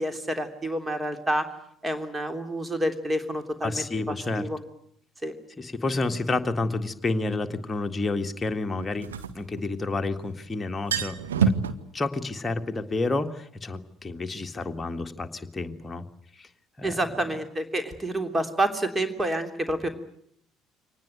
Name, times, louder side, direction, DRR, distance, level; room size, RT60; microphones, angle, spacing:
voice 1, 0.0-1.5 1.8-4.6 5.2-5.3 16.8-19.9, right 1 dB, 15° right, 7 dB, 3.3 m, -28 dB
voice 2, 3.6-4.5 5.6-9.1 9.3-11.5 11.9-16.0 16.4-16.5 16.8-17.0, left 3 dB, 20° left, 6 dB, 1.9 m, -30 dB
sound 1, 6.3-6.4 8.8-10.1 10.4-10.5 10.7-11.7, right 5 dB, 75° right, 1.3 m, -26 dB
24.5 x 19.5 x 9.3 m, 0.68 s
figure-of-eight pair, 55°, 0 cm